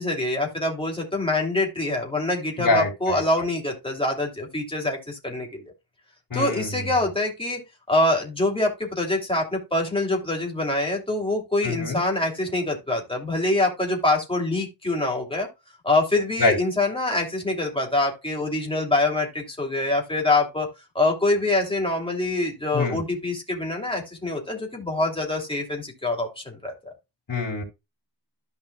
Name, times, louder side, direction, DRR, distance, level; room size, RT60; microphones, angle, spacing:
voice 1, 0.0-5.6 6.3-7.6 7.9-15.5 15.8-20.7 20.9-26.9, left 2 dB, 10° left, 2.8 m, -25 dB
voice 2, 2.6-3.2 6.3-7.0 11.6-12.0 16.4-16.6 22.7-23.0 27.3-27.6, left 3 dB, 55° left, 3.1 m, -25 dB
14.0 x 5.4 x 2.3 m
wide cardioid pair, 140°, 42 cm